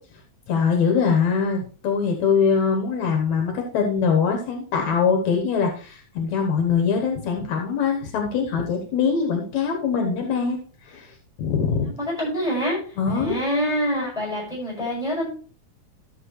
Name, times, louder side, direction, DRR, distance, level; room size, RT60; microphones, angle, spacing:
voice 1, 0.5-10.6 10.9-11.1 11.4-11.9 13.0-13.4, left 6 dB, 75° left, 2 dB, 2.4 m, -22 dB
voice 2, 12.0-12.8 13.1-15.3, equal, ahead, -3 dB, 5.7 m, -25 dB
13.0 x 7.1 x 3.2 m, 0.40 s
omnidirectional pair, 3.5 m